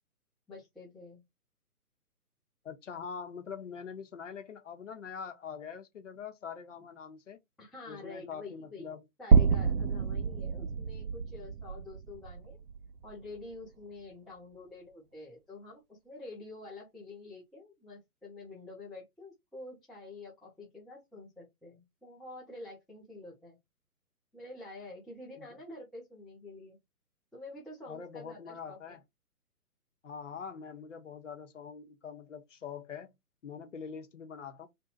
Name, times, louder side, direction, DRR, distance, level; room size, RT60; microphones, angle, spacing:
voice 1, 0.5-1.2 7.6-8.9 9.2-12.6 13.0-23.6 24.3-26.8 27.3-29.0, left 2 dB, ahead, 0.3 m, -48 dB
voice 2, 2.6-7.4 7.9-9.0 25.4-25.5 27.9-29.0 30.0-33.1 33.4-34.7, left 6 dB, 55° left, 0.8 m, -44 dB
sound 1, 9.3-13.5, right 6 dB, 75° right, 0.6 m, -28 dB
2.6 x 2.1 x 3.9 m
figure-of-eight pair, 135°, 46 cm